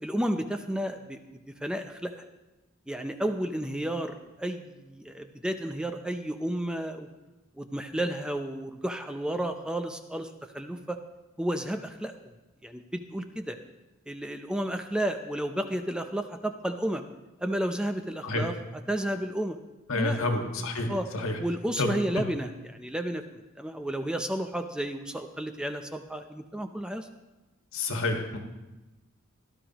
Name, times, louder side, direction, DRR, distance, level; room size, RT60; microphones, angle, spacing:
voice 1, 0.0-1.2 1.5-2.2 2.9-7.1 7.5-11.0 11.4-12.3 12.6-13.6 14.1-17.0 17.4-18.5 18.9-19.6 19.9-20.2 20.9-21.1 21.4-27.1, right 1 dB, 5° right, 6 dB, 0.5 m, -32 dB
voice 2, 19.9-21.4 21.8-21.9 27.7-28.4, left 2 dB, 75° left, 3 dB, 1.7 m, -29 dB
17.5 x 12.0 x 3.0 m, 1.1 s
head